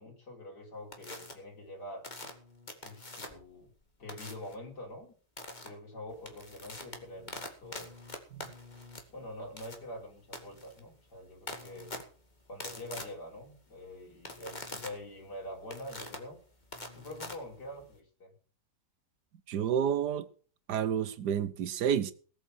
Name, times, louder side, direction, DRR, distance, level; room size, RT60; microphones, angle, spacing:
voice 1, 0.0-2.1 2.8-3.7 4.0-5.1 5.6-7.9 9.1-11.9 12.5-16.4 16.9-18.3, left 1 dB, 90° left, 4.2 m, -45 dB
sound 1, 0.9-1.3 2.0-3.5 4.1-4.5 5.4-5.7 6.1-18.0, left 2 dB, 25° left, 2.4 m, -45 dB
voice 2, 19.5-20.3 20.7-22.1, right 8 dB, 85° right, 1.5 m, -30 dB
18.5 x 8.3 x 6.4 m
omnidirectional pair, 1.7 m